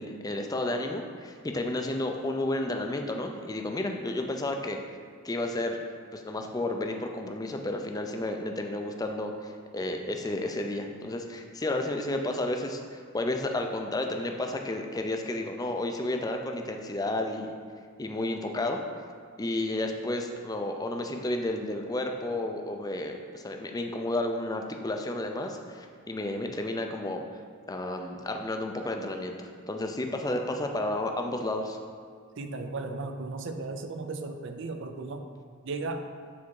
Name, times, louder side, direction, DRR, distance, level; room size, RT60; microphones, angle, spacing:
voice 1, 0.0-4.8 5.2-5.8 6.1-17.5 18.0-18.8 19.4-27.2 27.7-31.8, left 1 dB, 20° left, 4 dB, 0.4 m, -32 dB
voice 2, 32.4-35.3 35.6-36.0, right 3 dB, 60° right, 7 dB, 0.5 m, -35 dB
7.2 x 3.5 x 4.7 m, 2.1 s
head